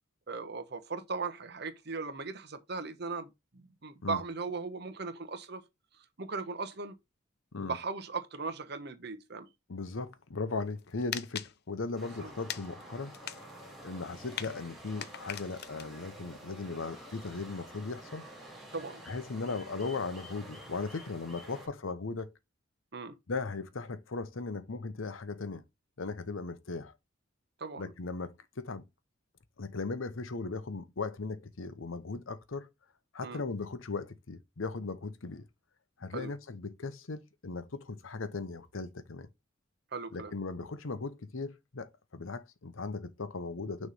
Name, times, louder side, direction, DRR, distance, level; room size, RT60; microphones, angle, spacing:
voice 1, 0.3-5.6 6.2-6.9 7.6-9.5 12.2-12.3 18.7-19.0 22.9-23.1 27.6-27.9 33.2-33.4 36.1-36.3 39.9-40.3, right 4 dB, 55° right, 1.0 m, -38 dB
voice 2, 9.7-13.2 13.8-18.2 19.1-22.3 23.3-25.6 26.0-26.9 27.8-28.8 29.6-32.7 33.1-35.5 36.0-39.3 40.1-43.9, left 3 dB, 85° left, 0.8 m, -38 dB
sound 1, 10.6-11.5 12.5-12.8 13.1-15.9, left 10 dB, 55° left, 0.5 m, -41 dB
sound 2, 12.0-21.7, right 1 dB, ahead, 1.9 m, -49 dB
6.3 x 3.2 x 5.5 m
head